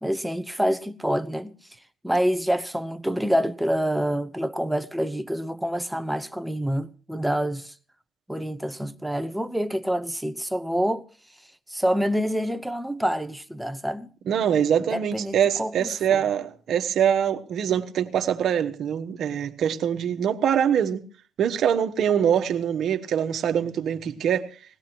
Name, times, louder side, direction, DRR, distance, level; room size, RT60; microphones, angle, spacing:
voice 1, 0.0-1.6 2.0-7.7 8.3-11.1 11.7-14.1 14.8-16.3, equal, 5° right, 0.9 m, -27 dB
voice 2, 14.3-21.0 21.4-24.5, right 9 dB, 70° right, 1.2 m, -24 dB
20.5 x 17.0 x 3.0 m
cardioid pair, 90°, 0 cm